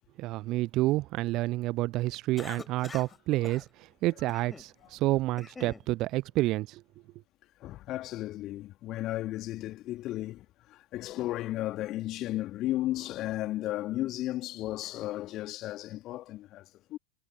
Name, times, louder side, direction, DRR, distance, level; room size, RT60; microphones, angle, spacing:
voice 1, 0.2-6.8, right 18 dB, 40° right, 0.6 m, -29 dB
Cough, 2.4-3.2 3.4-3.6 4.3-4.7 5.1-5.8, left 4 dB, 10° left, 3.6 m, -45 dB
voice 2, 7.6-17.0, left 15 dB, 35° left, 2.6 m, -34 dB
figure-of-eight pair, 90°, 0 cm